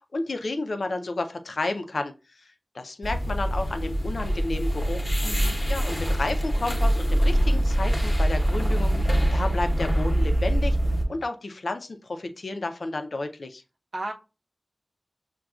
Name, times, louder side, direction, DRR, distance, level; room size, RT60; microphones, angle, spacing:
voice 1, 0.1-2.1 2.7-5.1 5.7-8.9 9.3-10.8 11.1-13.6, left 2 dB, 75° left, 0.5 m, -31 dB
sound 1, 3.0-11.0, equal, 30° left, 0.9 m, -24 dB
sound 2, 5.2-11.3, right 1 dB, 35° right, 0.8 m, -44 dB
voice 2, 5.2-5.6 13.9-14.1, right 2 dB, 85° right, 0.7 m, -34 dB
6.1 x 2.2 x 2.3 m
wide cardioid pair, 70°, 0 cm